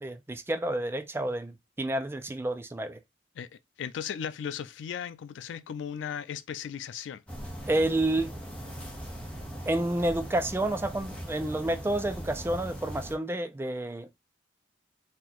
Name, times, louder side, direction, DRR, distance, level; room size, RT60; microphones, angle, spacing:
voice 1, 0.0-3.0 7.7-8.3 9.7-14.1, right 1 dB, 15° right, 0.3 m, -29 dB
voice 2, 3.8-7.2, left 8 dB, 90° left, 0.3 m, -36 dB
sound 1, 7.3-13.1, equal, 5° left, 0.9 m, -40 dB
2.9 x 2.4 x 4.0 m
head